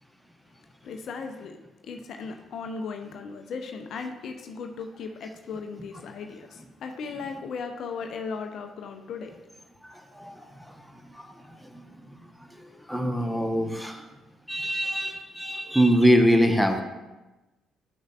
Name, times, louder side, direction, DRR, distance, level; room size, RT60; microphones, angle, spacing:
voice 1, 0.8-1.6 1.8-9.4, left 5 dB, 60° left, 5 dB, 0.6 m, -37 dB
voice 2, 9.8-14.1 14.5-16.8, equal, ahead, 5 dB, 1.0 m, -25 dB
11.0 x 6.4 x 2.4 m, 1.1 s
figure-of-eight pair, 45°, 0 cm